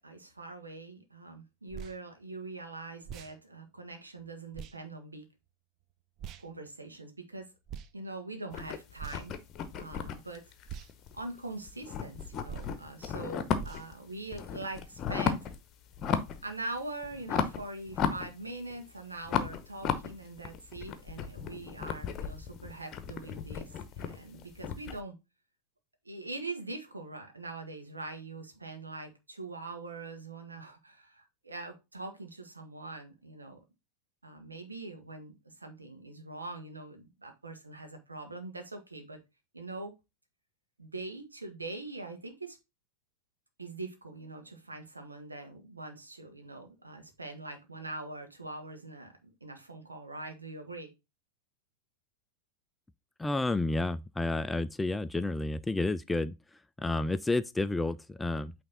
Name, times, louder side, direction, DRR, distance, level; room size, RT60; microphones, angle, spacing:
voice 1, 0.0-5.3 6.4-7.5 7.9-9.4 9.7-10.4 11.1-15.5 16.4-25.2 26.0-33.6 34.2-39.2 39.5-39.9 40.8-42.6 43.6-50.9, right 2 dB, 80° right, 1.5 m, -43 dB
sound 1, 1.7-2.0 3.0-3.3 4.5-4.8 6.2-6.5 7.7-7.9 9.0-9.4 10.7-10.9 12.5-12.8 13.6-13.9, right 8 dB, 35° right, 0.6 m, -42 dB
sound 2, 8.5-11.4 11.7-13.9 14.3-15.6 15.9-16.5 16.8-18.8 19.2-25.0, left 7 dB, 30° left, 0.9 m, -34 dB
voice 2, 53.2-56.3 56.8-58.5, left 2 dB, 10° left, 0.3 m, -30 dB
8.7 x 3.4 x 4.0 m
figure-of-eight pair, 90°, 0 cm